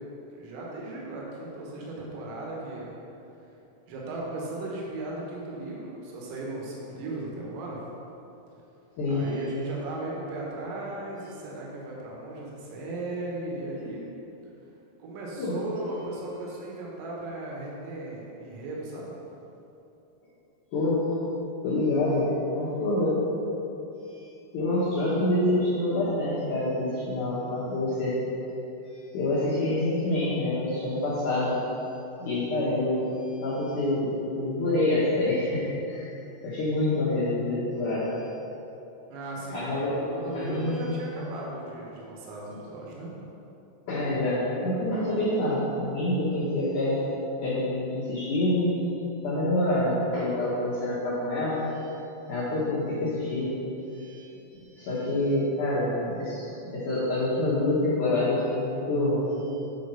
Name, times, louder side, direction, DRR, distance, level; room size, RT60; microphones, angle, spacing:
voice 1, 0.4-2.9 3.9-7.8 9.1-14.1 15.0-19.1 39.1-43.1, right 2 dB, 85° right, -3 dB, 3.8 m, -36 dB
voice 2, 21.6-23.2 24.5-28.2 29.1-31.5 32.2-33.1 33.4-36.1 36.4-38.1 39.5-40.0 40.3-40.8 43.9-47.0 47.4-48.8 49.2-51.9 52.3-53.5 53.8-54.2 54.7-59.2, left 1 dB, 80° left, -10 dB, 1.8 m, -26 dB
10.0 x 4.4 x 5.5 m, 2.9 s
omnidirectional pair, 5.7 m